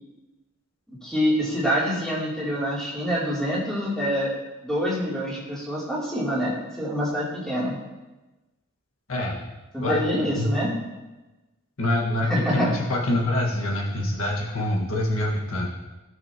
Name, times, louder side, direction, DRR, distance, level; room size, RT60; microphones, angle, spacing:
voice 1, 1.0-7.7 9.7-10.7 12.3-12.7 13.9-14.1, equal, 5° left, -8 dB, 3.0 m, -26 dB
voice 2, 11.8-15.7, left 1 dB, 65° left, -3 dB, 1.6 m, -25 dB
17.5 x 6.3 x 2.9 m, 1.1 s
head